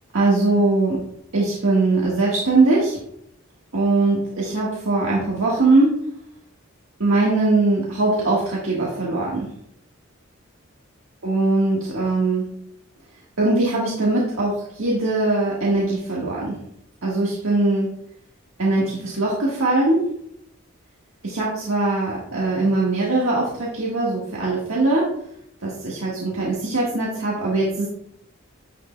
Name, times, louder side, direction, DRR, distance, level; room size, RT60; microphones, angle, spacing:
voice 1, 0.1-1.0 1.3-3.0 3.7-6.0 7.0-9.5 11.2-12.5 13.4-16.6 17.0-17.9 18.6-20.1 21.2-25.1 25.6-27.9, right 2 dB, 80° right, -5 dB, 1.5 m, -21 dB
9.8 x 6.0 x 2.2 m, 0.73 s
head